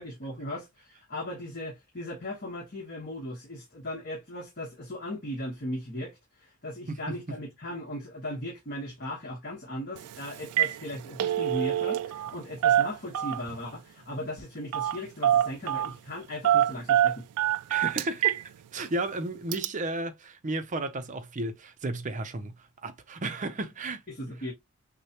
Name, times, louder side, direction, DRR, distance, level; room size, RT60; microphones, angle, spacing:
voice 1, 0.0-17.5 24.1-24.5, left 1 dB, 45° left, 1.2 m, -37 dB
Telephone, 10.0-10.1 10.4-10.8 11.0-12.3 12.6-13.6 14.7-15.0 15.2-15.9 16.4-18.4 18.8-18.9 19.5-19.7, right 11 dB, 85° right, 0.3 m, -25 dB
voice 2, 17.7-24.0, right 2 dB, 35° right, 0.5 m, -33 dB
6.4 x 2.2 x 2.9 m
head